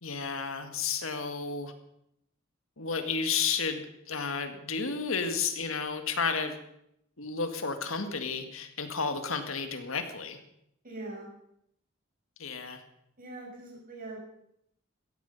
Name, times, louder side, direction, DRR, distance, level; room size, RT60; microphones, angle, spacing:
voice 1, 0.0-1.7 2.8-6.5 7.2-10.4 12.4-12.8, left 5 dB, 75° left, 7 dB, 1.9 m, -32 dB
voice 2, 10.8-11.3 13.2-14.2, right 2 dB, 45° right, -1 dB, 6.5 m, -42 dB
17.0 x 14.0 x 5.4 m, 0.76 s
head